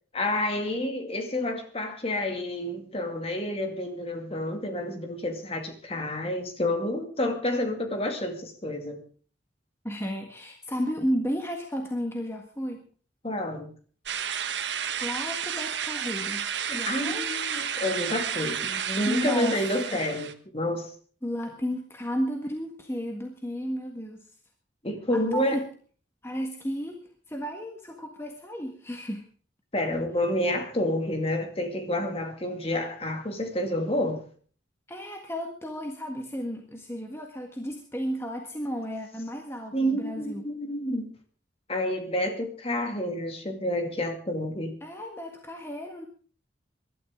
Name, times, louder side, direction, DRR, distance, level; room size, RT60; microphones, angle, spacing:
voice 1, 0.1-9.0 13.2-13.7 16.7-20.9 24.8-25.6 29.7-34.2 39.7-41.1 41.7-44.7, left 1 dB, 30° left, 2.3 m, -29 dB
voice 2, 9.8-12.8 15.0-17.3 19.1-19.6 19.9-20.0 21.2-24.3 25.1-25.6 26.2-27.0 27.3-29.3 34.9-40.4 44.8-46.1, equal, 15° left, 1.6 m, -33 dB
sound 1, 14.1-20.3, right 8 dB, 80° right, 1.3 m, -31 dB
23.0 x 12.5 x 3.7 m
head